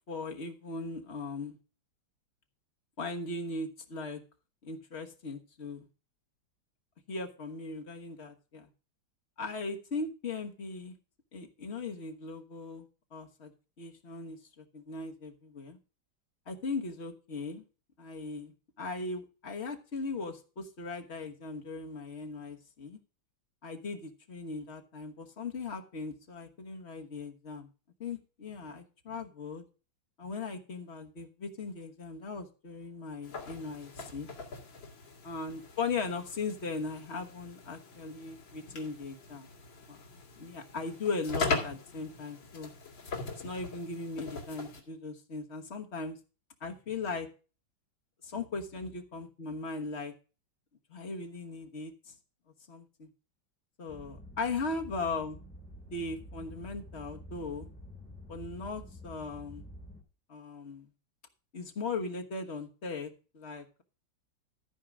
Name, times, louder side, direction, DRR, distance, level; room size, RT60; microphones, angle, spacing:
voice 1, 0.1-1.6 3.0-4.2 4.6-5.9 7.1-8.7 9.4-10.9 11.3-12.9 13.1-13.5 13.8-15.8 16.5-17.6 18.0-23.0 23.6-27.7 28.0-29.6 30.2-34.3 35.2-39.5 39.9-40.0 40.4-42.7 43.4-46.2 46.6-47.3 48.2-50.1 50.9-52.1 52.7-53.1 53.8-55.4 55.9-57.7 58.3-59.6 60.3-60.9 61.5-63.8, left 3 dB, 40° left, 3 dB, 1.3 m, -38 dB
sound 1, 33.2-44.8, left 3 dB, 80° left, 2.9 m, -40 dB
sound 2, 53.9-60.0, equal, 5° left, 2.2 m, -49 dB
13.5 x 4.7 x 6.1 m, 0.35 s
omnidirectional pair, 2.1 m